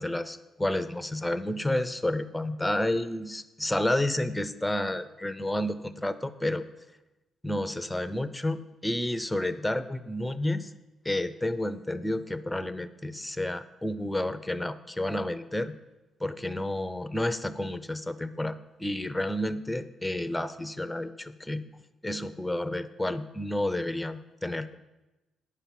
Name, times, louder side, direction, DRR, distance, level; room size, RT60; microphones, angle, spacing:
voice 1, 0.0-6.6 7.4-10.7 11.0-15.7 16.2-21.6 22.0-24.8, left 1 dB, 10° left, 12 dB, 0.6 m, -30 dB
9.9 x 5.7 x 7.3 m, 1.0 s
cardioid pair, 90°, 0 cm